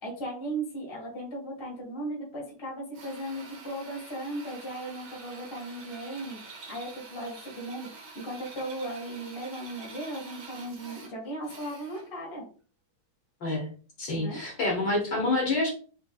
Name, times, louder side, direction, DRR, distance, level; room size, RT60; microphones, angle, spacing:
voice 1, 0.0-6.4 6.7-12.4 14.1-14.4, right 1 dB, 20° left, -3 dB, 0.7 m, -37 dB
Drill, 2.9-12.2, right 4 dB, 60° right, 1.5 m, -47 dB
voice 2, 14.0-15.7, left 2 dB, 50° left, -3 dB, 1.7 m, -27 dB
5.1 x 3.4 x 2.3 m, 0.40 s
omnidirectional pair, 3.4 m